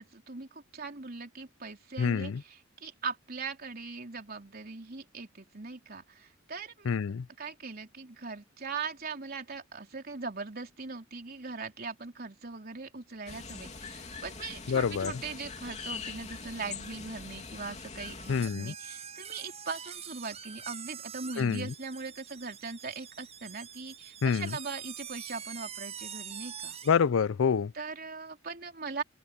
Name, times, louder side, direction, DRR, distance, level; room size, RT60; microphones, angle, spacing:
voice 1, 0.0-6.9 7.4-26.8 27.7-29.0, right 4 dB, 45° right, 3.7 m, -40 dB
voice 2, 2.0-2.4 6.9-7.3 14.7-15.1 18.3-18.7 21.4-21.7 24.2-24.5 26.9-27.7, left 6 dB, 75° left, 0.4 m, -27 dB
sound 1, 13.3-18.4, left 4 dB, 35° left, 3.1 m, -42 dB
sound 2, 18.2-27.0, right 8 dB, 30° right, 6.7 m, -44 dB
open air
head